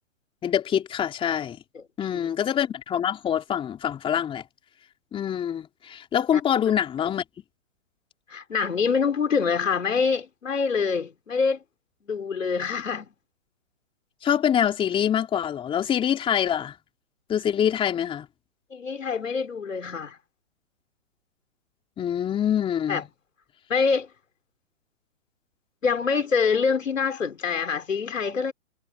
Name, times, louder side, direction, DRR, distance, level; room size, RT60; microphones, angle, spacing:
voice 1, 0.4-1.6 2.0-4.4 5.1-7.2 14.2-16.8 17.3-18.3 22.0-23.1, left 9 dB, 15° left, 3.5 m, -25 dB
voice 2, 8.3-11.6 12.0-13.1 18.7-20.2 22.9-23.0 23.7-24.1 25.8-28.5, left 5 dB, 80° left, 4.9 m, -25 dB
hypercardioid pair, 140°, 38 cm